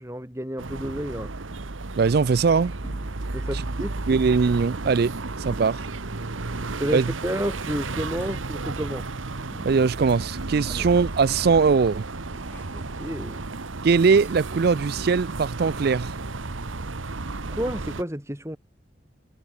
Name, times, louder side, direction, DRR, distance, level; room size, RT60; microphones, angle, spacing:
voice 1, 0.0-1.3 3.3-4.1 6.8-9.1 10.7-10.9 12.7-13.4 17.5-18.6, equal, 15° right, 3.7 m, -31 dB
sound 1, 0.6-18.0, right 3 dB, 80° right, 1.3 m, -33 dB
voice 2, 2.0-2.7 3.5-3.6 4.1-5.2 5.4-5.8 6.9-7.1 9.6-12.0 13.8-16.1, right 5 dB, 50° right, 0.4 m, -21 dB
sound 2, 2.8-3.4 3.8-3.9 4.2-4.4 4.8-4.9 5.5-6.1 6.8-7.3 8.1-8.7 9.5-10.0 10.3-10.4 10.9-11.9 12.3-13.0, equal, 10° left, 7.8 m, -48 dB
head